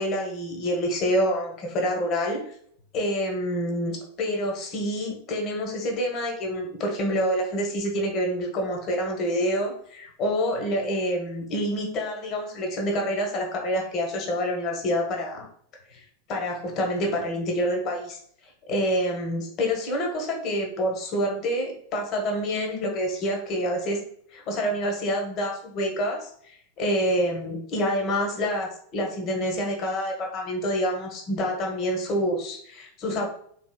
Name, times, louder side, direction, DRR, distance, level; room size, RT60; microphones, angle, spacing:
voice 1, 0.0-2.4 2.9-3.9 4.2-15.5 15.9-16.0 16.3-18.2 18.7-24.0 24.3-33.3, equal, 35° left, 2 dB, 0.9 m, -27 dB
3.7 x 3.4 x 2.2 m, 0.63 s
figure-of-eight pair, 90°, 0 cm